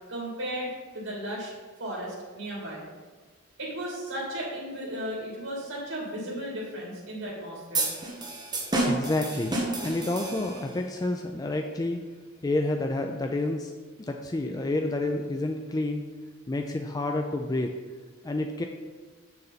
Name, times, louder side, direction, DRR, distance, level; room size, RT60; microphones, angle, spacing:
voice 1, 0.1-1.5 1.8-2.8 3.6-7.9, right 1 dB, 85° right, -4 dB, 2.5 m, -35 dB
sound 1, 7.7-10.8, right 2 dB, 20° right, 1.2 m, -30 dB
voice 2, 8.8-12.0 12.4-13.7 14.1-16.0 16.5-17.7 18.2-18.6, left 2 dB, 20° left, 3 dB, 0.4 m, -29 dB
7.2 x 6.7 x 4.1 m, 1.4 s
head